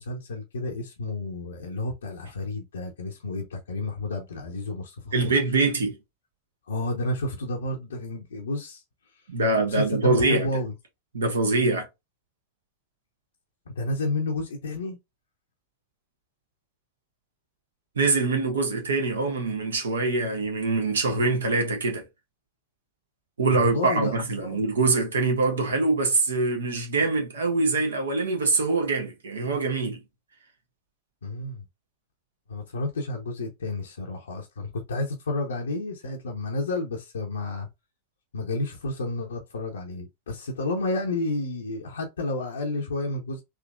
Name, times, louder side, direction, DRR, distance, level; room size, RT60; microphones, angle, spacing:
voice 1, 0.0-5.3 6.7-8.8 9.7-10.7 13.7-15.0 23.5-24.6 31.2-31.6 32.5-37.7 38.3-43.4, left 2 dB, 70° left, 0.7 m, -31 dB
voice 2, 5.1-6.0 9.3-10.5 11.1-11.9 17.9-22.0 23.4-30.0, right 3 dB, 70° right, 1.2 m, -24 dB
3.7 x 2.9 x 2.3 m
figure-of-eight pair, 90°, 0 cm